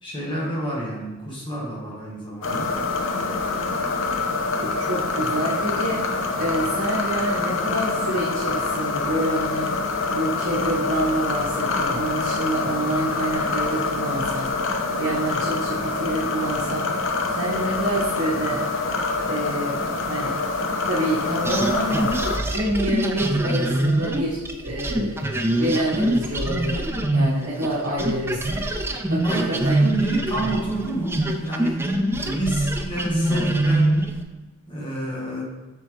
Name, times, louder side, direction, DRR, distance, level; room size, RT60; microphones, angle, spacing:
voice 1, 0.0-2.7 29.2-34.0 34.7-35.4, right 2 dB, 25° left, -4 dB, 1.8 m, -29 dB
sound 1, 2.4-22.4, left 3 dB, 60° left, 0.8 m, -26 dB
voice 2, 4.6-6.0 6.4-9.7 10.1-17.0 17.3-18.6 19.3-19.8 20.0-20.3 20.8-22.1 22.4-25.2 25.5-29.2 29.6-29.8, right 1 dB, 75° right, -8 dB, 1.6 m, -27 dB
sound 2, 21.4-27.7 28.0-34.2, right 1 dB, 10° right, 0.4 m, -24 dB
6.5 x 6.4 x 3.4 m, 1.2 s
head